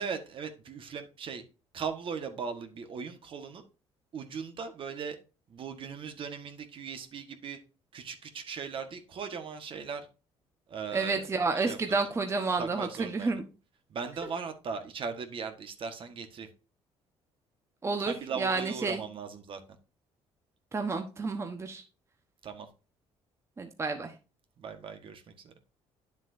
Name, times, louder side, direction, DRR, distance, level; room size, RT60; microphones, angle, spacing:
voice 1, 0.0-1.4 1.7-3.6 4.1-5.2 5.5-7.6 7.9-10.1 10.7-12.1 12.6-13.4 13.9-16.5 18.0-19.6 22.4-22.7 24.6-25.5, right 6 dB, 50° right, 1.5 m, -38 dB
voice 2, 10.9-12.9 13.1-13.4 17.8-19.0 20.7-21.8 23.6-24.1, right 4 dB, 25° right, 1.2 m, -30 dB
9.7 x 7.3 x 2.7 m
cardioid pair, 110°, 11 cm